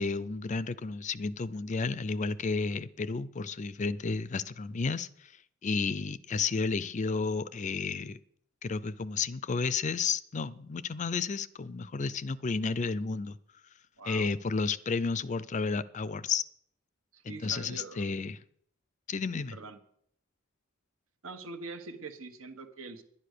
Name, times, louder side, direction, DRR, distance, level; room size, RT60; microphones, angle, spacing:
voice 1, 0.0-5.3 5.6-8.2 8.6-13.4 14.1-16.4 17.2-18.4 19.1-19.6, left 4 dB, 35° left, 17 dB, 0.5 m, -32 dB
voice 2, 14.0-14.3 17.1-18.1 19.5-19.8 21.2-23.0, right 3 dB, 80° right, 7 dB, 1.4 m, -43 dB
11.0 x 9.6 x 6.7 m, 0.68 s
head